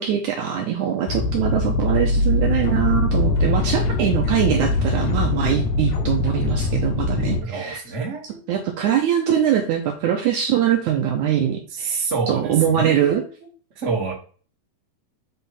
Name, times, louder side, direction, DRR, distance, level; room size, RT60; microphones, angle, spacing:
voice 1, 0.0-7.8 8.5-13.2, right 9 dB, 75° right, 2 dB, 1.8 m, -22 dB
sound 1, 1.1-7.4, left 2 dB, 70° left, 2.0 m, -22 dB
voice 2, 7.4-8.4 11.7-13.5 13.7-14.1, right 4 dB, 30° right, -3 dB, 1.4 m, -28 dB
8.1 x 3.6 x 4.3 m, 0.40 s
omnidirectional pair, 4.5 m